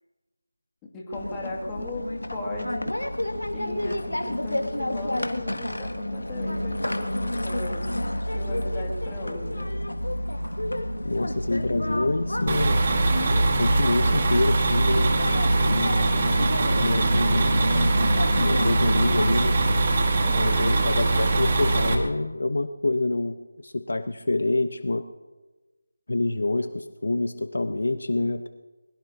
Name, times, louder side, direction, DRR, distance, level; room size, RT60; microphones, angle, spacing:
voice 1, 0.9-2.9 3.5-9.7 20.2-20.9, left 2 dB, 10° left, -3 dB, 2.4 m, -37 dB
sound 1, 1.1-19.8, left 1 dB, 85° left, 1.6 m, -29 dB
voice 2, 11.0-12.8 13.6-15.1 15.7-16.2 16.7-17.7 18.0-19.5 20.4-25.0 26.1-28.5, left 2 dB, 65° left, 10 dB, 0.9 m, -27 dB
sound 2, 12.5-22.0, right 2 dB, 35° right, 1.9 m, -22 dB
22.0 x 21.0 x 2.8 m, 1.2 s
figure-of-eight pair, 165°, 0 cm